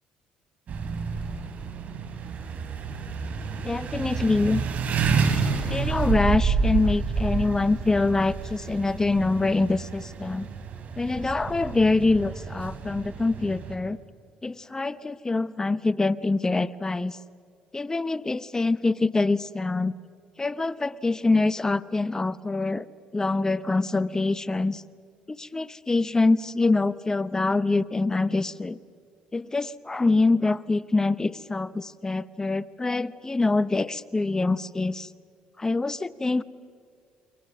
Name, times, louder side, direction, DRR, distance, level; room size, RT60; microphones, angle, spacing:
sound 1, 0.7-13.8, right 5 dB, 55° right, 3.3 m, -29 dB
voice 1, 3.6-4.6 5.7-10.5 11.0-14.0 14.4-17.2 17.7-19.9 20.4-22.9 23.1-24.8 25.3-28.8 29.3-35.1 35.6-36.4, left 3 dB, 20° left, 17 dB, 0.8 m, -25 dB
28.5 x 23.0 x 6.1 m, 2.2 s
supercardioid pair, 70°, 3 cm